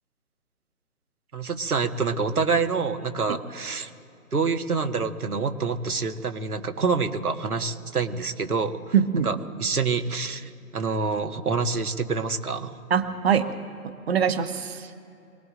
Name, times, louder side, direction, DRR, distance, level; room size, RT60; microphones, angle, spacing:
voice 1, 1.3-3.9 4.3-8.9 9.2-12.8, right 4 dB, 75° right, 6 dB, 1.6 m, -27 dB
voice 2, 8.9-9.3 12.9-13.5 13.8-14.9, right 7 dB, 40° right, 9 dB, 1.2 m, -23 dB
26.5 x 19.0 x 2.6 m, 2.7 s
figure-of-eight pair, 145°, 45 cm